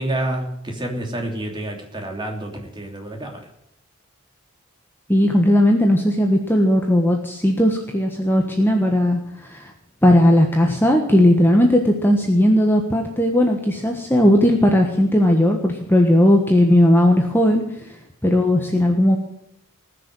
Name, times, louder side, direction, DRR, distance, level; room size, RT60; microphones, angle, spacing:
voice 1, 0.0-3.5, right 1 dB, 20° right, 2 dB, 3.0 m, -28 dB
voice 2, 5.1-9.7 10.0-17.6 18.2-19.2, left 1 dB, 10° left, 2 dB, 1.4 m, -17 dB
19.5 x 6.7 x 9.1 m, 0.77 s
head